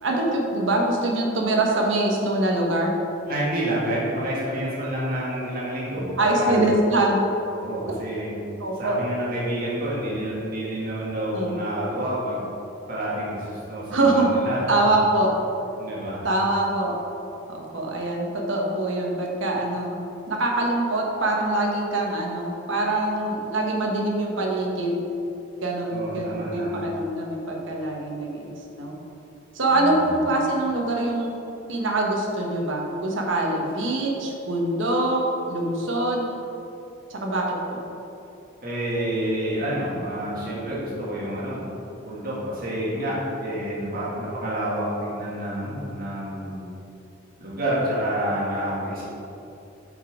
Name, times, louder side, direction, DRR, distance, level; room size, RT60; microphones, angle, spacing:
voice 1, 0.0-2.9 6.2-7.2 8.6-9.0 11.3-11.6 13.9-14.4 14.7-15.3 16.2-16.9 17.5-20.0 20.3-25.0 25.6-28.9 29.5-31.4 31.7-36.3 37.1-37.8, right 2 dB, 70° right, -1 dB, 1.2 m, -24 dB
voice 2, 3.3-6.7 7.5-8.3 8.8-12.5 12.9-14.6 15.8-16.3 25.9-26.8 29.7-30.3 38.6-41.7 42.0-46.6 47.4-49.0, right 1 dB, 50° right, -7 dB, 1.6 m, -28 dB
6.0 x 5.4 x 4.9 m, 2.8 s
head